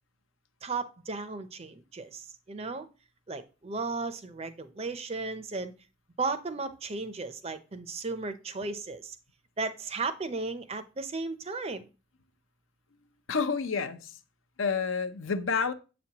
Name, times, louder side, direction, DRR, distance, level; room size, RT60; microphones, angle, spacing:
voice 1, 0.6-2.9 3.3-5.7 6.2-9.2 9.6-11.9, right 3 dB, 30° right, 0.5 m, -35 dB
voice 2, 13.3-14.1 14.6-15.7, left 5 dB, 70° left, 0.6 m, -29 dB
7.8 x 6.0 x 2.8 m
head